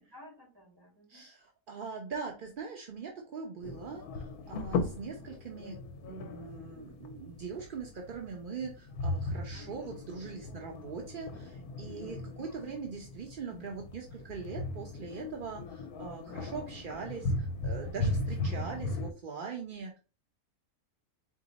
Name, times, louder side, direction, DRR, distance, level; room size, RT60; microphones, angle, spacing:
voice 1, 0.0-1.3 9.5-10.0, equal, 15° right, -2 dB, 2.2 m, -55 dB
voice 2, 1.1-5.8 6.0-20.0, right 5 dB, 55° right, 1 dB, 0.6 m, -42 dB
sound 1, 3.6-19.1, left 2 dB, 80° left, 1.1 m, -37 dB
4.0 x 2.7 x 3.9 m, 0.34 s
omnidirectional pair, 1.6 m